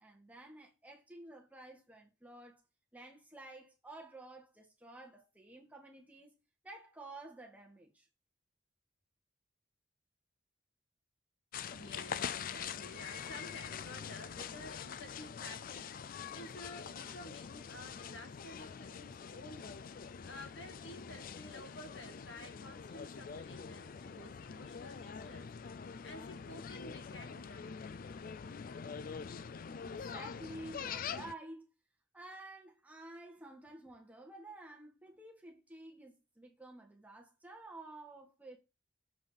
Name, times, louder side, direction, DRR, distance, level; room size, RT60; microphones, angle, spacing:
voice 1, 0.0-2.6 2.9-6.4 6.6-8.1 29.8-31.7 32.1-38.6, right 2 dB, 10° right, 1.7 m, -51 dB
sound 1, 11.5-31.3, left 7 dB, 50° left, 0.4 m, -44 dB
voice 2, 11.6-19.7 20.2-25.5 25.9-27.9, left 1 dB, 70° left, 1.8 m, -52 dB
7.3 x 3.9 x 5.0 m
head